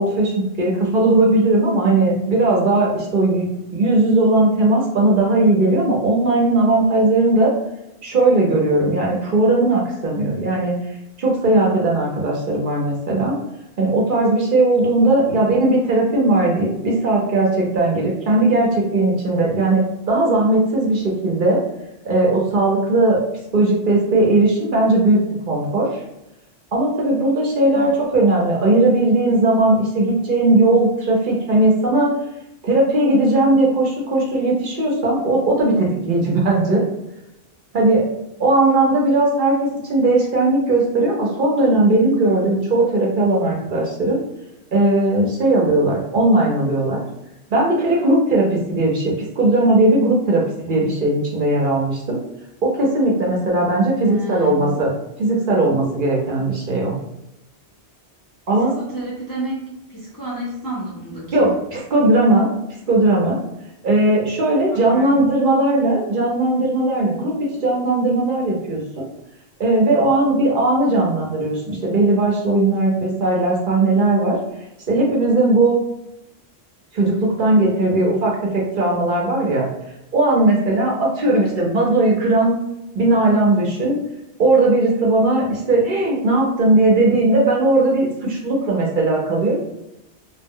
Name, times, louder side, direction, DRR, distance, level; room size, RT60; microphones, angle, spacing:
voice 1, 0.0-3.5 3.7-7.5 8.0-10.7 11.2-13.4 13.8-21.6 22.0-23.2 23.5-25.9 26.7-32.1 32.6-36.8 37.7-38.0 38.4-39.5 39.8-44.2 44.7-47.0 47.5-52.2 52.6-54.9 55.2-57.0 58.5-58.7 61.3-62.5 62.9-63.4 63.8-67.3 67.6-69.0 69.6-74.4 74.9-75.8 76.9-79.7 80.1-82.6 82.9-84.0 84.4-89.6, right 2 dB, 55° right, -2 dB, 0.7 m, -18 dB
voice 2, 15.2-15.5 27.6-28.0 54.0-54.8 58.5-61.6 64.7-65.3 81.2-81.5, right 1 dB, 25° left, -6 dB, 0.4 m, -32 dB
2.1 x 2.0 x 3.5 m, 0.89 s
omnidirectional pair, 1.1 m